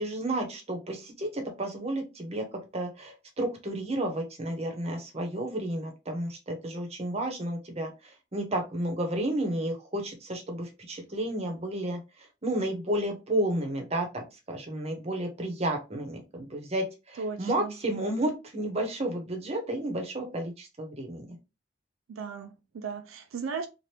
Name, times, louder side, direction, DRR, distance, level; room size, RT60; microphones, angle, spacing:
voice 1, 0.0-2.4 2.7-7.9 8.3-12.0 12.4-21.3, right 1 dB, 30° right, 0.8 m, -32 dB
voice 2, 17.2-17.7 22.1-23.7, right 5 dB, 85° right, 0.4 m, -36 dB
2.8 x 2.5 x 3.2 m
head